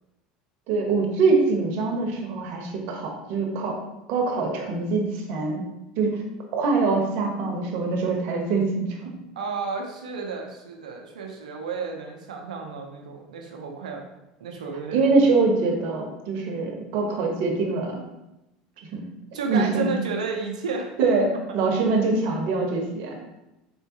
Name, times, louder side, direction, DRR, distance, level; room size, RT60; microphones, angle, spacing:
voice 1, 0.7-3.8 4.1-5.6 6.0-6.2 6.5-9.1 14.9-18.0 18.8-19.0 19.5-20.0 21.0-23.2, right 3 dB, 60° right, 2 dB, 0.9 m, -24 dB
voice 2, 9.4-14.0 14.4-15.1 19.3-20.9, right 4 dB, 85° right, 2 dB, 0.7 m, -32 dB
3.6 x 3.6 x 2.8 m, 0.95 s
hypercardioid pair, 85°, 4 cm